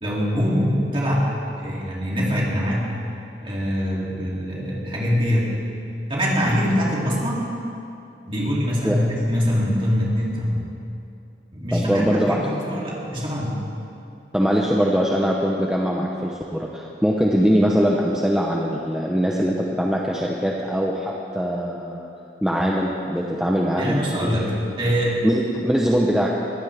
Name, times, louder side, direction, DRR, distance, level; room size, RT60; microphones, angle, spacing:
voice 1, 0.0-1.3 1.6-3.0 3.4-5.7 6.1-7.5 8.2-10.6 11.5-13.6 23.8-25.2, equal, 30° right, -5 dB, 3.0 m, -23 dB
voice 2, 11.7-12.4 14.3-22.1 22.4-24.4 25.2-26.3, equal, 5° right, -2 dB, 0.8 m, -22 dB
22.0 x 15.0 x 3.5 m, 2.7 s
head